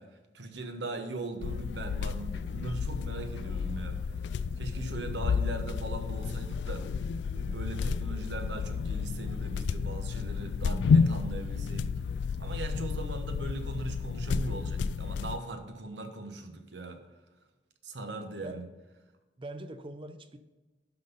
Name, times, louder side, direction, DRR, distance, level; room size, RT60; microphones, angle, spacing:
voice 1, 0.0-4.2 4.6-6.9 7.3-11.9 12.4-17.0 17.8-18.6, right 2 dB, 80° right, 1.1 m, -39 dB
sound 1, 1.4-15.4, left 5 dB, 70° left, 0.3 m, -31 dB
voice 2, 18.3-18.6 19.4-20.4, right 1 dB, 30° right, 0.6 m, -43 dB
11.5 x 3.9 x 5.4 m
head